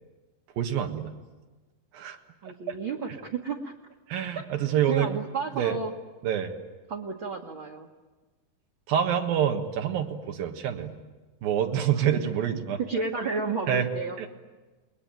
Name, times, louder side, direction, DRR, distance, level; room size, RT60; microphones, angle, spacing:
voice 1, 0.6-1.1 1.9-2.2 2.7-2.8 4.1-5.1 5.5-5.8 6.2-6.5 8.9-11.0 11.4-12.8 13.7-13.9 14.2-14.3, right 9 dB, 85° right, 4 dB, 3.4 m, -27 dB
voice 2, 2.4-3.7 4.9-5.9 6.9-7.9 12.0-12.1 12.9-14.2, right 4 dB, 45° right, -1 dB, 1.9 m, -32 dB
29.0 x 21.5 x 9.1 m, 1.2 s
omnidirectional pair, 4.0 m